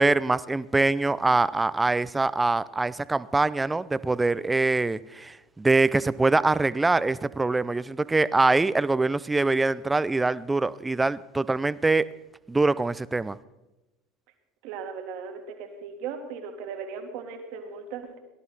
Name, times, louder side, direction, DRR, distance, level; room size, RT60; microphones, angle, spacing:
voice 1, 0.0-12.1 12.5-13.4, right 3 dB, 15° right, 0.5 m, -24 dB
voice 2, 14.6-18.2, right 6 dB, 65° right, 2.0 m, -37 dB
19.0 x 11.0 x 4.1 m
hypercardioid pair, 80°, 0 cm